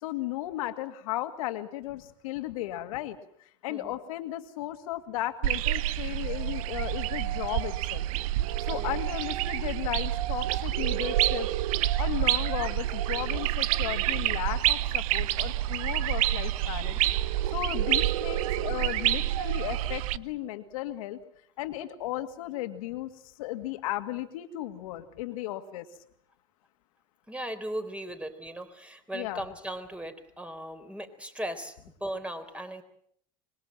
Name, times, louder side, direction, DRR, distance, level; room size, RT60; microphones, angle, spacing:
voice 1, 0.0-3.2 3.6-8.1 8.7-11.5 12.0-17.0 17.5-21.2 21.6-23.1 23.4-25.9 29.1-29.4, left 14 dB, 80° left, 8 dB, 2.3 m, -35 dB
voice 2, 3.7-4.0 8.7-9.0 27.3-32.8, right 1 dB, 5° right, 8 dB, 4.0 m, -38 dB
sound 1, 5.4-20.2, right 14 dB, 80° right, 0.9 m, -28 dB
26.0 x 21.5 x 7.6 m, 0.69 s
hypercardioid pair, 95°, 18 cm